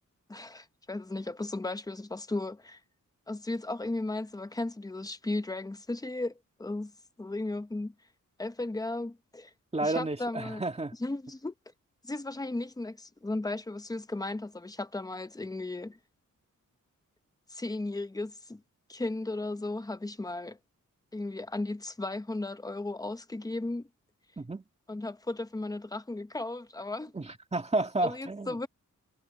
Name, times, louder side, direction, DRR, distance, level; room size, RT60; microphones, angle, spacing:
voice 1, 0.3-2.8 3.3-6.3 6.6-6.9 7.2-7.9 8.4-9.5 9.8-10.6 11.0-11.5 12.0-16.0 17.5-18.6 18.9-20.6 21.1-23.9 24.9-27.1 28.0-28.7, left 2 dB, 10° left, 0.8 m, -35 dB
voice 2, 9.7-11.0 24.4-24.6 27.1-28.7, right 2 dB, 20° right, 2.3 m, -31 dB
wide cardioid pair, 165°, 32 cm